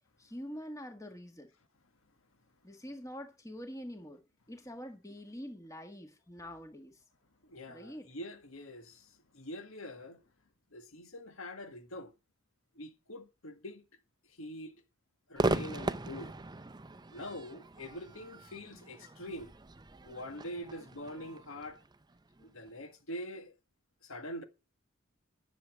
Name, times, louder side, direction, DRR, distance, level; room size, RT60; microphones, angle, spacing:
voice 1, 0.2-1.5 2.6-4.2 4.5-6.9 7.7-8.1, equal, 15° left, 1.7 m, -45 dB
voice 2, 7.5-9.1 9.3-10.2 10.7-12.1 12.8-13.8 14.4-14.7 15.3-16.3 17.1-19.5 20.0-21.8 22.4-23.5 24.0-24.4, left 1 dB, 75° left, 1.8 m, -44 dB
Crowd / Fireworks, 15.4-22.7, right 2 dB, 20° right, 0.6 m, -38 dB
11.0 x 7.2 x 6.4 m
head